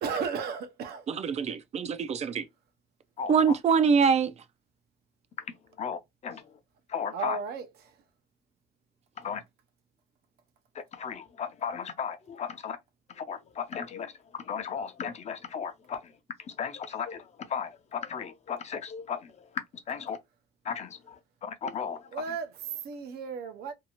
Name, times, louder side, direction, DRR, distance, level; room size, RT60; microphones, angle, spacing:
voice 1, 0.0-1.1 7.1-8.0 22.1-23.7, right 6 dB, 70° right, 0.7 m, -34 dB
voice 2, 1.1-2.5 3.3-4.3, right 6 dB, 40° right, 0.4 m, -24 dB
voice 3, 3.2-3.5 5.4-6.6 6.9-7.4 9.2-9.4 10.9-12.8 13.1-16.1 16.4-20.2 20.6-22.2, left 7 dB, 40° left, 0.6 m, -36 dB
2.7 x 2.3 x 2.9 m
cardioid pair, 110°, 17 cm